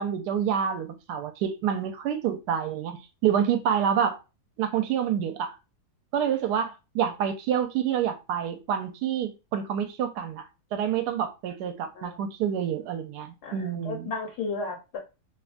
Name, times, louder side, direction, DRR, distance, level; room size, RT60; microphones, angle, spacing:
voice 1, 0.0-4.2 4.6-5.6 6.1-10.4 10.7-14.1, right 8 dB, 80° right, 1.1 m, -28 dB
voice 2, 13.4-15.0, left 4 dB, 75° left, 1.3 m, -34 dB
3.0 x 2.1 x 2.4 m
omnidirectional pair, 1.7 m